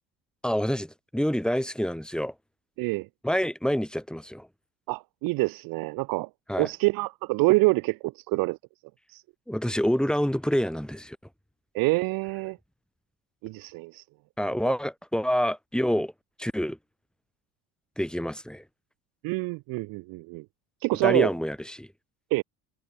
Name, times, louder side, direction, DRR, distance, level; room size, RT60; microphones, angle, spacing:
voice 1, 0.4-2.3 3.2-4.5 6.5-6.7 9.5-11.2 14.4-16.1 16.4-16.8 18.0-18.6 21.0-21.9, equal, ahead, 3.2 m, -27 dB
voice 2, 2.8-3.1 4.9-6.3 6.6-8.6 9.1-9.2 11.7-12.6 13.4-14.0 19.2-20.4 20.8-21.3 22.3-22.4, right 24 dB, 55° right, 0.5 m, -26 dB
hypercardioid pair, 60°, 44 cm